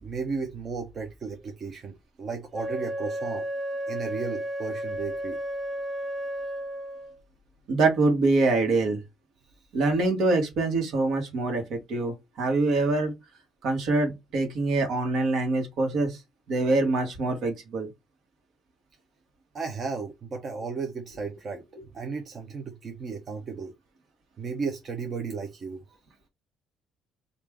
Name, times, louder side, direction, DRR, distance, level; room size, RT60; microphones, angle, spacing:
voice 1, 0.0-3.5 3.9-5.4 19.5-23.7 24.4-25.8, right 4 dB, 35° right, 0.6 m, -34 dB
Wind instrument woodwind instrument, 2.5-7.2, right 1 dB, 10° right, 0.8 m, -33 dB
voice 2, 7.7-9.0 9.7-13.1 13.6-16.2 16.5-17.9, right 3 dB, 65° right, 1.2 m, -24 dB
3.4 x 2.4 x 3.4 m
cardioid pair, 140°, 0 cm